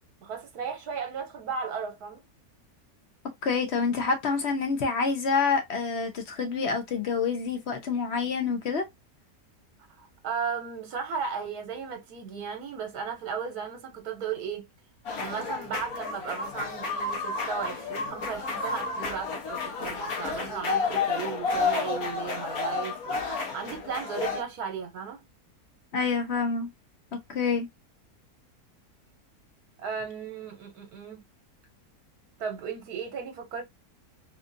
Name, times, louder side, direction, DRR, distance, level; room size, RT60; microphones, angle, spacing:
voice 1, 0.2-2.2 10.0-14.6 15.2-25.2 29.8-31.2 32.4-33.6, right 6 dB, 75° right, 1.4 m, -35 dB
voice 2, 3.4-8.9 25.9-26.7 27.1-27.7, left 5 dB, 50° left, 0.9 m, -27 dB
sound 1, 15.1-24.4, left 4 dB, 70° left, 1.4 m, -31 dB
3.6 x 2.5 x 2.5 m
omnidirectional pair, 1.6 m